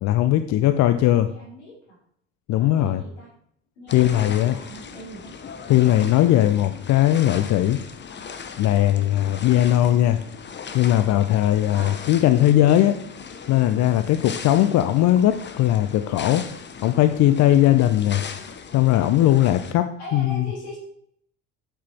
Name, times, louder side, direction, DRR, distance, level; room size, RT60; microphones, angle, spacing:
voice 1, 0.0-1.3 2.5-3.0 3.9-4.6 5.7-7.8 8.6-10.2 10.7-13.0 13.5-16.5 16.8-18.2 18.7-20.5, left 13 dB, 55° left, 10 dB, 0.7 m, -19 dB
voice 2, 1.2-2.0 2.5-3.3 3.8-5.3 11.7-12.0 20.0-20.8, equal, 85° left, -2 dB, 3.4 m, -40 dB
sound 1, 3.9-19.7, left 6 dB, 35° left, 1.1 m, -38 dB
9.1 x 7.6 x 4.4 m, 0.67 s
hypercardioid pair, 60°, 33 cm